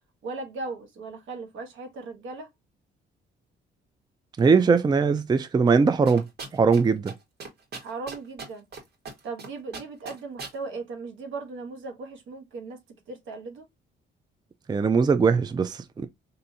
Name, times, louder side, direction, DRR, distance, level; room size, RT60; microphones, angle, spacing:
voice 1, 0.2-2.5 7.8-8.7 9.2-12.8 13.1-13.7, right 3 dB, 80° right, 1.2 m, -37 dB
voice 2, 4.4-6.2 6.5-7.1 14.7-16.1, right 5 dB, 20° right, 0.4 m, -21 dB
sound 1, 6.1-6.8 7.1-7.2 7.4-8.8 9.0-9.5 9.7-10.5, right 4 dB, 55° right, 1.5 m, -38 dB
4.1 x 2.6 x 2.7 m
cardioid pair, 90°, 20 cm